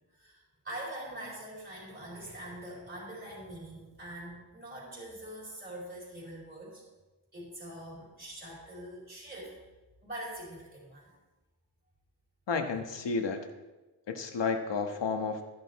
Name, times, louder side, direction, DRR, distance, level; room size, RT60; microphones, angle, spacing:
voice 1, 0.1-6.8 7.3-9.5 10.0-11.1, right 1 dB, 20° right, -6 dB, 4.5 m, -43 dB
voice 2, 12.5-13.4 14.1-15.4, left 4 dB, 70° left, 5 dB, 1.4 m, -31 dB
13.5 x 11.0 x 4.2 m, 1.1 s
wide cardioid pair, 170°, 44 cm